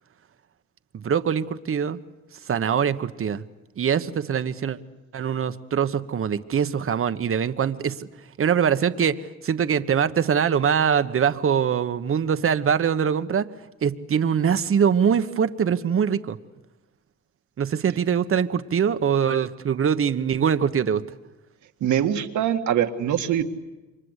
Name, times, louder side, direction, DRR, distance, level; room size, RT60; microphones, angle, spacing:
voice 1, 0.9-2.0 2.4-3.4 3.8-4.8 5.1-8.1 8.4-13.5 13.8-16.4 17.6-21.0, right 7 dB, 45° right, 11 dB, 1.2 m, -23 dB
voice 2, 21.8-23.4, right 10 dB, 75° right, 7 dB, 1.9 m, -23 dB
28.5 x 24.5 x 8.2 m, 1.1 s
cardioid pair, 90°, 30 cm